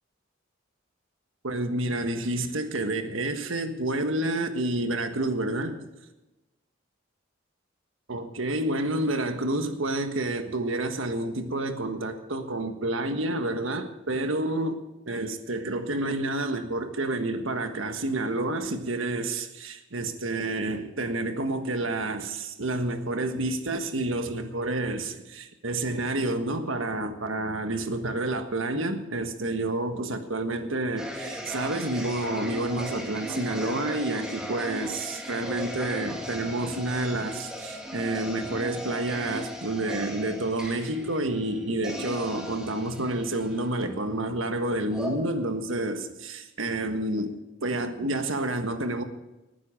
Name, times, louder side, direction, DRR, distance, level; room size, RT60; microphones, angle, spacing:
voice 1, 1.4-5.8 8.1-14.8 15.1-49.0, right 2 dB, 85° right, 7 dB, 1.5 m, -29 dB
sound 1, 31.0-44.5 44.9-45.1, equal, 5° right, 2.2 m, -38 dB
19.0 x 9.8 x 5.0 m, 1.0 s
head